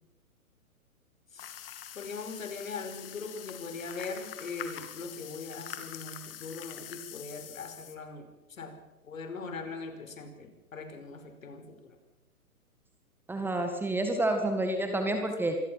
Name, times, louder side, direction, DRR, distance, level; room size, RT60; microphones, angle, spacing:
sound 1, 1.4-7.9, left 10 dB, 40° left, 2.9 m, -44 dB
voice 1, 2.0-8.8 9.0-12.0, left 4 dB, 60° left, 7 dB, 5.3 m, -41 dB
voice 2, 13.3-15.6, right 1 dB, 5° right, 5 dB, 1.7 m, -29 dB
26.5 x 22.5 x 5.9 m, 1.0 s
figure-of-eight pair, 125°, 44 cm